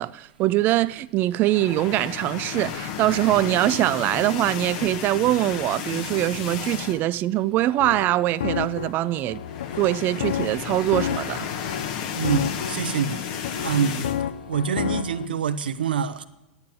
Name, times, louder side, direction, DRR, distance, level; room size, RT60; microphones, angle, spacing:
voice 1, 0.0-9.4 9.8-11.5, right 15 dB, 40° right, 0.4 m, -23 dB
sound 1, 1.4-7.2 7.6-7.8 8.0-8.1 9.2-14.2, left 8 dB, 55° left, 1.3 m, -33 dB
sound 2, 7.6-15.3, left 9 dB, 70° left, 0.6 m, -31 dB
voice 2, 12.2-14.1 14.5-16.2, right 7 dB, 75° right, 0.8 m, -26 dB
11.5 x 9.6 x 7.5 m
hypercardioid pair, 95°, 5 cm